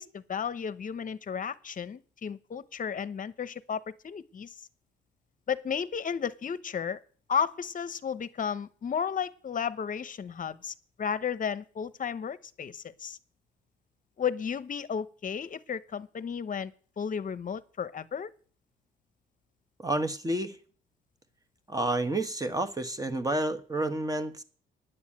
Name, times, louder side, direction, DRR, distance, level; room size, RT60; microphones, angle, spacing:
voice 1, 0.0-4.7 5.5-7.0 7.3-13.2 14.2-18.3, left 7 dB, 40° left, 15 dB, 0.9 m, -33 dB
voice 2, 19.8-20.6 21.7-24.4, right 2 dB, 15° right, 9 dB, 1.3 m, -30 dB
10.0 x 7.2 x 8.6 m, 0.43 s
cardioid pair, 90°, 20 cm